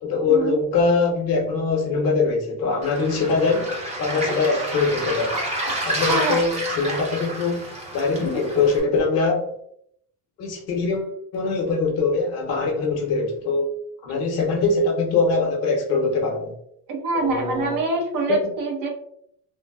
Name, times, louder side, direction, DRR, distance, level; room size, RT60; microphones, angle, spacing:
voice 1, 0.0-5.4 5.8-7.7 7.9-9.5 10.4-13.7 14.0-16.5 17.1-17.8 18.3-18.5, left 4 dB, 45° left, 0 dB, 0.6 m, -22 dB
Waves surf, 2.8-8.8, right 1 dB, 20° right, 0.6 m, -29 dB
voice 2, 6.1-6.4 16.9-18.9, right 3 dB, 65° right, 1 dB, 0.8 m, -25 dB
3.0 x 2.1 x 2.3 m, 0.70 s
cardioid pair, 170°, 36 cm